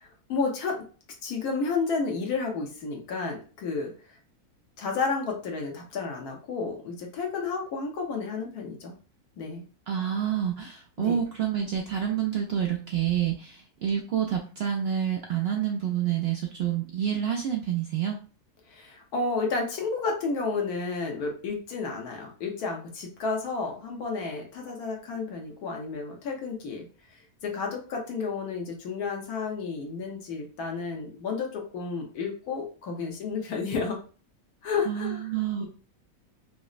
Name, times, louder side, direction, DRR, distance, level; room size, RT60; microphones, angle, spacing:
voice 1, 0.3-0.8 1.2-4.2 4.8-8.9 9.4-9.6 11.0-11.2 18.7-26.8 27.4-34.0 34.6-35.7, left 4 dB, 75° left, 1 dB, 1.4 m, -31 dB
voice 2, 9.9-18.2 34.9-35.7, right 9 dB, 75° right, 2 dB, 0.5 m, -28 dB
5.1 x 2.0 x 2.4 m, 0.36 s
omnidirectional pair, 1.6 m